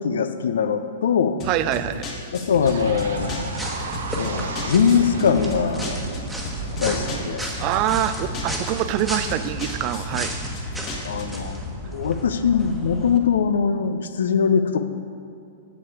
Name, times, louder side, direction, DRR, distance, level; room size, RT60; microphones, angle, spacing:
voice 1, 0.0-1.4 2.5-3.5 4.1-6.0 6.8-7.5 11.0-14.8, left 6 dB, 75° left, 10 dB, 0.5 m, -22 dB
sound 1, 1.4-11.5, left 2 dB, 35° left, 1.3 m, -35 dB
voice 2, 1.5-2.1 7.6-10.4, right 12 dB, 40° right, 12 dB, 0.4 m, -25 dB
sound 2, 2.6-8.9, right 4 dB, 75° right, 0.8 m, -34 dB
sound 3, 2.7-13.2, equal, 5° right, 1.2 m, -33 dB
7.3 x 6.7 x 4.8 m, 2.5 s
hypercardioid pair, 120°, 0 cm